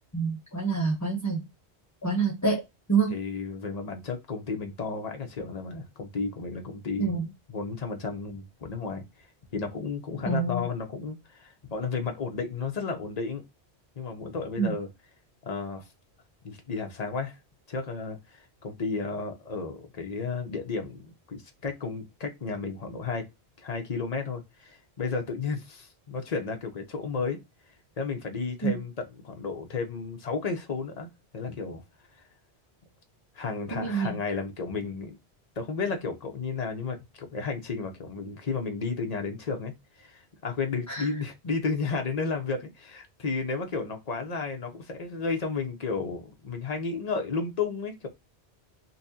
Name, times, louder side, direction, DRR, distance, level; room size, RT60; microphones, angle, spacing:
voice 1, 0.1-1.5 2.0-2.6 2.9-3.1 7.0-7.3 10.3-10.6 14.6-14.7 28.6-28.8 33.7-34.2 40.9-41.1, right 4 dB, 20° left, 0.7 m, -27 dB
voice 2, 3.1-9.0 9.5-13.4 14.0-14.9 15.4-15.8 16.4-17.4 17.7-23.3 23.6-27.4 28.0-31.8 33.3-35.2 35.6-39.7 40.0-48.1, left 4 dB, 40° left, 0.9 m, -33 dB
4.2 x 2.8 x 2.6 m
omnidirectional pair, 1.1 m